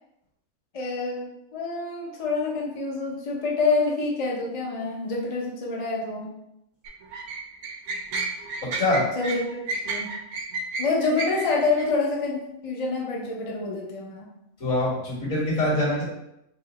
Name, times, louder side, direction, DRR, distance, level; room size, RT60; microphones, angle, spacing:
voice 1, 0.7-6.3 9.1-10.1 10.8-12.4 12.6-14.3, left 3 dB, 40° left, -2 dB, 0.5 m, -27 dB
sound 1, 6.9-11.9, right 3 dB, 75° right, 1.0 m, -31 dB
voice 2, 8.6-9.1 14.6-16.0, left 1 dB, 60° left, -5 dB, 2.1 m, -24 dB
4.8 x 2.0 x 4.0 m, 0.82 s
omnidirectional pair, 1.6 m